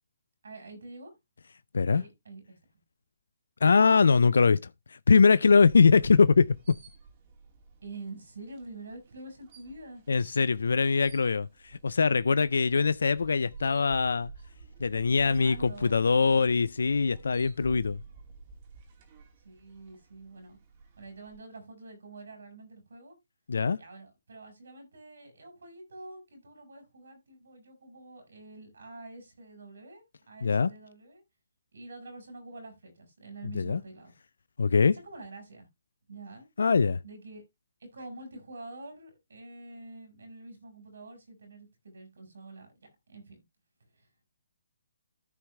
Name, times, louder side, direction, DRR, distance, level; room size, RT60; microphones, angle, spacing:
voice 1, 0.4-1.1 1.8-2.6 7.8-10.0 15.2-16.5 19.4-20.6 21.0-23.2 23.8-31.2 31.7-34.1 34.9-35.7 36.1-36.5 37.0-37.4 37.9-43.4 43.9-44.3, right 2 dB, 75° right, 4.6 m, -47 dB
voice 2, 3.6-4.6 4.9-6.5 10.1-14.3 14.8-18.0 23.5-23.8 30.4-30.7 33.6-33.8 34.6-35.0 36.6-37.0, left 5 dB, 75° left, 0.4 m, -22 dB
sound 1, 5.4-21.4, right 4 dB, 40° right, 2.5 m, -50 dB
14.0 x 4.7 x 3.2 m
hypercardioid pair, 145°, 0 cm